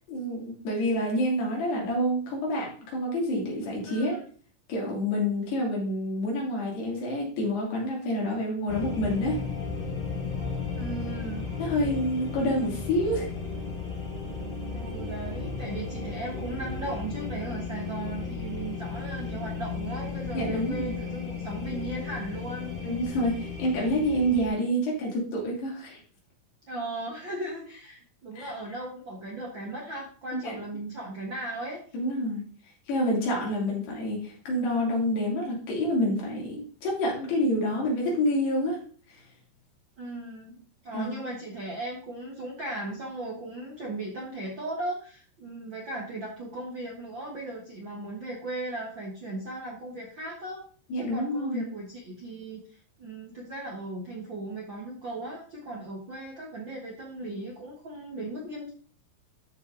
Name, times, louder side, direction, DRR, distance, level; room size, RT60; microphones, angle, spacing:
voice 1, 0.1-4.2 4.7-9.4 11.6-13.3 20.3-21.0 22.8-26.0 28.4-28.5 30.4-30.6 31.9-32.4 32.9-38.8 39.1-39.2 40.9-41.1 50.9-51.6, equal, 85° left, -3 dB, 5.2 m, -28 dB
voice 2, 3.9-4.2 10.7-11.5 14.7-22.7 26.6-31.8 40.0-40.6 40.8-50.6 50.9-58.7, right 2 dB, 55° right, -2 dB, 1.3 m, -37 dB
sound 1, 8.7-24.5, left 5 dB, 65° left, 0.5 m, -35 dB
12.0 x 5.5 x 3.9 m, 0.42 s
omnidirectional pair, 4.5 m